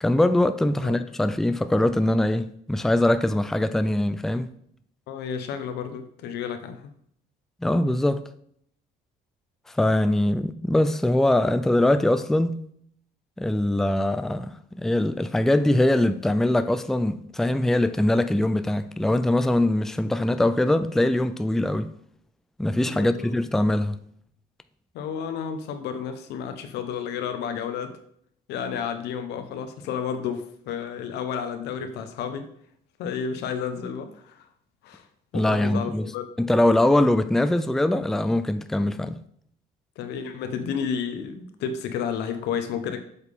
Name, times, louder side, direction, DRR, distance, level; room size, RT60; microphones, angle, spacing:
voice 1, 0.0-4.5 7.6-8.2 9.7-12.6 13.4-14.5 14.8-21.9 22.6-24.0 35.3-36.1 36.4-39.2, left 1 dB, ahead, 0.4 m, -22 dB
voice 2, 5.1-6.9 22.8-23.3 24.9-28.0 28.5-32.5 33.0-34.4 34.8-35.0 35.3-36.2 40.0-43.0, left 7 dB, 85° left, 1.2 m, -31 dB
8.1 x 7.2 x 3.7 m
cardioid pair, 110°, 17 cm